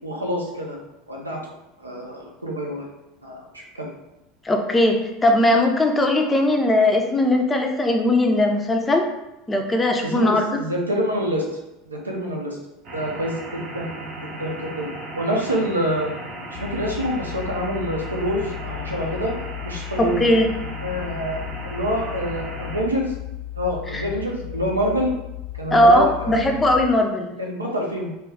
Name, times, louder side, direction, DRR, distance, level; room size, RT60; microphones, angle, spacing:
voice 1, 0.0-0.8 1.1-1.4 1.8-2.9 3.2-3.9 10.0-11.5 11.9-12.6 12.9-13.9 14.2-14.9 15.2-16.1 16.5-19.3 19.6-20.3 20.8-23.1 23.6-25.1 25.6-26.6 27.4-28.1, equal, 90° right, -1 dB, 0.5 m, -26 dB
voice 2, 4.4-9.1 9.5-10.6 20.0-20.5 23.9-24.1 25.7-27.3, left 1 dB, 15° left, 3 dB, 0.4 m, -19 dB
sound 1, 12.8-22.8, right 1 dB, 50° right, 0.8 m, -36 dB
sound 2, 16.5-26.9, left 14 dB, 70° left, 0.8 m, -35 dB
2.3 x 2.2 x 3.5 m, 0.93 s
figure-of-eight pair, 75°, 0 cm